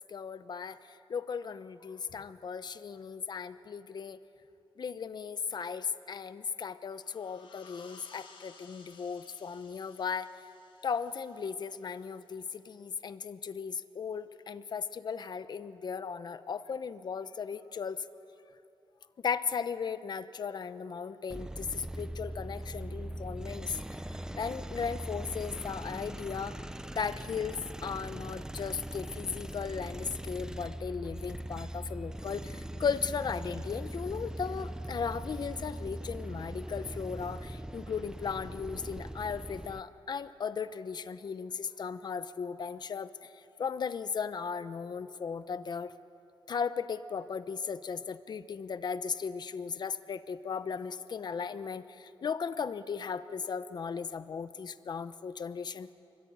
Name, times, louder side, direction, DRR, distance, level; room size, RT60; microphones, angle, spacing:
voice 1, 0.1-0.8 1.1-4.2 4.8-10.3 10.8-18.0 19.2-23.8 24.4-26.5 26.9-43.3 43.6-45.9 46.5-55.9, left 6 dB, 50° left, 12 dB, 0.9 m, -36 dB
sound 1, 6.9-12.3, left 4 dB, 75° left, 4.6 m, -57 dB
sound 2, 21.3-39.8, right 1 dB, 5° right, 0.7 m, -41 dB
26.0 x 24.0 x 9.5 m, 2.8 s
wide cardioid pair, 155°, 9 cm